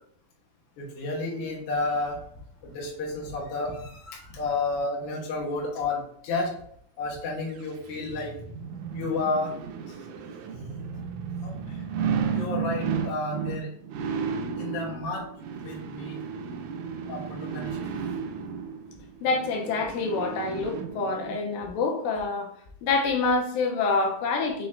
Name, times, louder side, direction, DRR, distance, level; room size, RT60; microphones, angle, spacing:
voice 1, 0.8-2.2 2.6-6.5 7.0-8.3 8.9-9.5 11.4-11.5 12.3-13.7 14.6-15.3 15.6-16.2 17.1-17.8, left 3 dB, 65° left, -3 dB, 1.4 m, -31 dB
sound 1, 7.5-21.4 21.8-21.9, right 6 dB, 85° right, 1.6 m, -33 dB
voice 2, 19.2-22.5 22.8-24.7, left 3 dB, 85° left, 2 dB, 2.3 m, -26 dB
5.9 x 2.5 x 3.2 m, 0.67 s
omnidirectional pair, 4.0 m